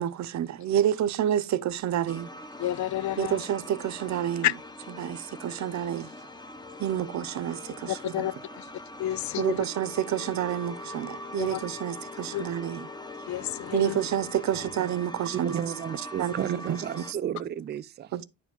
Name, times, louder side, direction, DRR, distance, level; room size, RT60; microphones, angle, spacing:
voice 1, 0.0-2.3 3.2-4.5 5.0-6.1 6.8-8.3 9.4-12.9 13.7-15.6 15.9-17.2 18.1-18.2, right 10 dB, 65° right, 0.8 m, -29 dB
sound 1, 2.1-17.1, left 1 dB, 15° left, 0.9 m, -43 dB
voice 2, 2.6-3.4 4.4-4.5 7.9-8.6 9.0-9.5 11.4-11.6 12.3-12.4 13.3-14.0, left 13 dB, 70° left, 0.5 m, -30 dB
Telephone, 9.8-14.8, left 10 dB, 40° left, 1.2 m, -47 dB
voice 3, 15.3-18.1, right 10 dB, 35° right, 0.4 m, -33 dB
10.0 x 4.9 x 3.7 m
cardioid pair, 90°, 30 cm